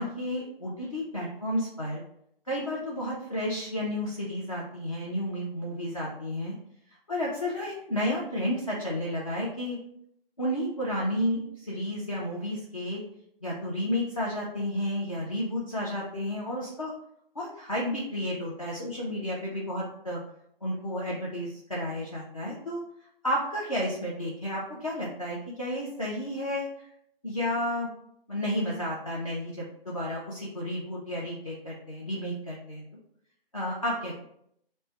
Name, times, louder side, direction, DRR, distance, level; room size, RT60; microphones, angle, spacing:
voice 1, 0.0-2.0 2.5-6.5 7.1-9.8 10.4-13.0 13.4-16.9 17.4-20.2 20.6-22.8 23.2-26.9 27.2-27.9 28.3-32.8 33.5-34.1, left 1 dB, 35° left, -5 dB, 0.5 m, -32 dB
3.2 x 2.1 x 4.2 m, 0.72 s
figure-of-eight pair, 155°, 30 cm